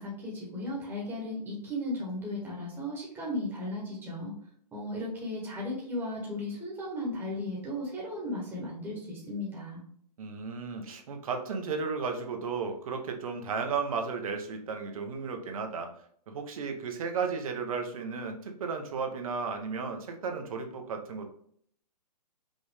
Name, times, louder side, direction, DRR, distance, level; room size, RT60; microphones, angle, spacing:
voice 1, 0.0-4.3 4.7-9.8, left 1 dB, 10° right, -4 dB, 1.2 m, -35 dB
voice 2, 10.2-15.9 16.3-21.3, right 5 dB, 55° right, 5 dB, 0.9 m, -34 dB
5.3 x 2.6 x 3.4 m, 0.63 s
figure-of-eight pair, 125°, 21 cm